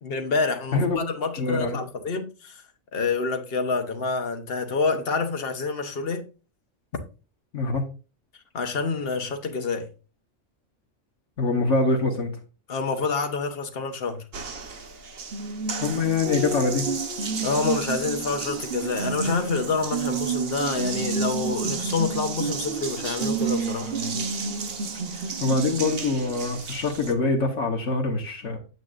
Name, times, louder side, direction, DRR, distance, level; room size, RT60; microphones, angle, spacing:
voice 1, 0.0-2.6 2.9-6.3 8.5-9.9 12.7-14.2 17.2-24.2, left 4 dB, 50° left, 1.3 m, -27 dB
voice 2, 1.4-1.8 7.5-7.8 11.4-12.3 15.8-16.9 25.4-28.6, left 3 dB, 65° left, 1.5 m, -24 dB
Water tap faucet, 14.3-27.1, right 5 dB, 50° right, 1.1 m, -30 dB
9.5 x 8.0 x 2.5 m
omnidirectional pair, 1.4 m